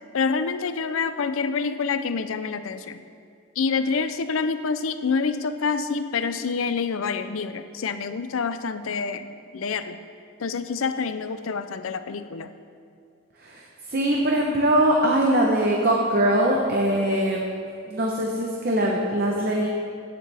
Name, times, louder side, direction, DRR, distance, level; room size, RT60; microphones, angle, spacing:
voice 1, 0.1-3.0 3.6-9.3 9.5-10.0 10.4-12.5, left 5 dB, 85° left, 11 dB, 0.5 m, -27 dB
voice 2, 13.4-17.5 17.9-19.7, right 1 dB, 45° right, -1 dB, 0.9 m, -22 dB
16.0 x 7.0 x 3.4 m, 2.4 s
head